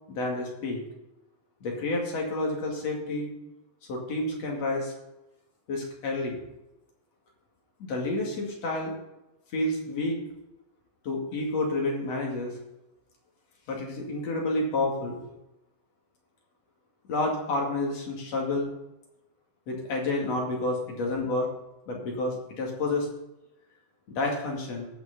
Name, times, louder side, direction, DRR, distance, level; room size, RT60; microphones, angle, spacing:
voice 1, 0.1-0.8 1.6-3.3 3.9-4.9 5.7-6.4 7.8-8.9 9.5-10.2 11.0-12.5 13.7-15.2 17.1-18.7 19.7-21.5 21.9-23.1 24.1-24.9, left 2 dB, 60° left, -1 dB, 3.4 m, -29 dB
18.0 x 6.2 x 4.3 m, 0.93 s
omnidirectional pair, 3.4 m